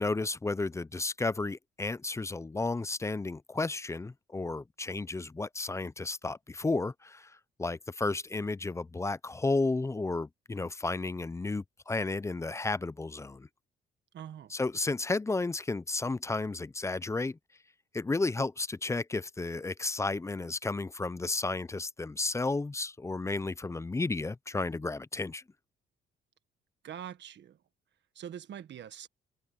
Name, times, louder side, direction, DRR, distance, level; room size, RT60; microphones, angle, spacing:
voice 1, 0.0-7.3 7.6-13.5 14.5-17.4 17.9-25.4, left 3 dB, 15° left, 0.4 m, -32 dB
voice 2, 14.1-14.5 26.8-27.6 28.1-29.1, right 9 dB, 65° right, 1.5 m, -43 dB
cardioid pair, 90°, 20 cm